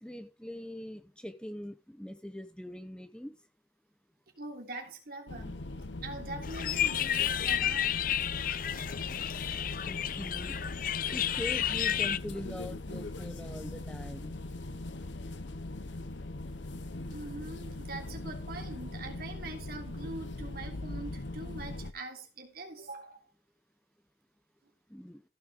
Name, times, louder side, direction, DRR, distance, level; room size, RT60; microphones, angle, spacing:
voice 1, 0.0-3.4 9.8-10.6 11.1-14.3 24.9-25.2, left 1 dB, 5° left, 0.8 m, -42 dB
voice 2, 4.4-5.6 6.0-8.0 17.1-23.2, right 2 dB, 55° right, 3.2 m, -43 dB
sound 1, 5.3-21.9, left 2 dB, 85° left, 1.1 m, -40 dB
sound 2, 6.4-12.2, left 10 dB, 50° left, 0.6 m, -31 dB
15.0 x 6.4 x 5.0 m
head